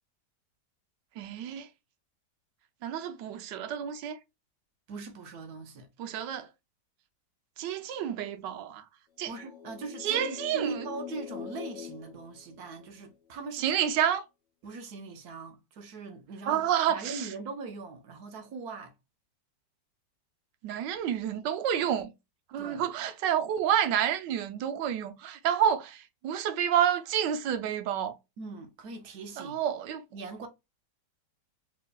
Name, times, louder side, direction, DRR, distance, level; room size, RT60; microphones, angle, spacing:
voice 1, 1.2-1.7 2.8-4.2 6.0-6.5 7.6-8.8 9.2-9.3 10.0-10.9 13.6-14.2 16.5-17.3 20.6-22.1 22.5-28.2 29.4-30.0, right 9 dB, 85° right, 1.3 m, -29 dB
voice 2, 4.9-5.9 9.3-13.8 14.6-18.9 22.6-22.9 28.4-29.6 30.1-30.5, right 4 dB, 65° right, 1.3 m, -41 dB
sound 1, 9.2-13.1, left 9 dB, 60° left, 0.4 m, -43 dB
4.6 x 3.0 x 2.3 m
omnidirectional pair, 1.9 m